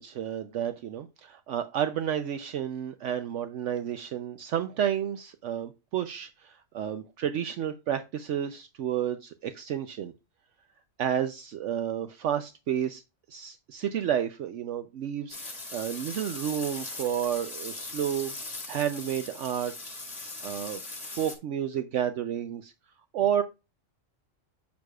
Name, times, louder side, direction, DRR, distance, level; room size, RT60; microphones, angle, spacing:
voice 1, 0.0-10.1 11.0-13.0 13.3-18.4 18.7-20.0 20.4-22.7 23.1-23.4, right 9 dB, 70° right, 0.9 m, -31 dB
sound 1, 15.3-21.4, left 2 dB, 30° left, 1.9 m, -40 dB
8.3 x 6.4 x 2.3 m
omnidirectional pair, 1.3 m